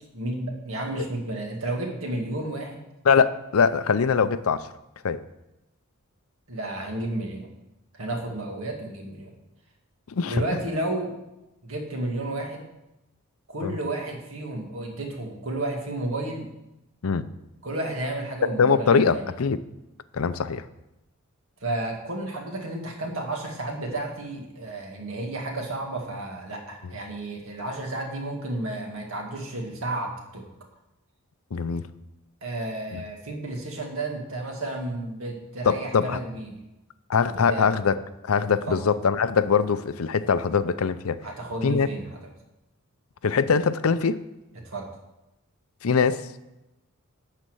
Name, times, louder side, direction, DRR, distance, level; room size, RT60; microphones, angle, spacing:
voice 1, 0.1-2.8 6.5-7.5 7.9-9.3 10.3-11.1 11.6-12.7 13.5-16.5 17.6-19.3 21.6-30.5 32.4-36.6 37.3-37.7 38.7-38.8 41.2-42.2 44.6-44.9, right 2 dB, 75° right, 1 dB, 2.1 m, -32 dB
voice 2, 3.0-4.7 5.0-5.2 10.1-10.4 13.6-13.8 17.0-17.3 18.6-19.6 20.1-20.6 26.8-26.9 31.5-31.9 35.7-36.2 37.1-38.0 38.2-41.2 41.6-41.9 43.2-44.2 45.8-46.3, left 5 dB, 80° left, 14 dB, 0.5 m, -22 dB
11.5 x 4.3 x 7.9 m, 0.95 s
head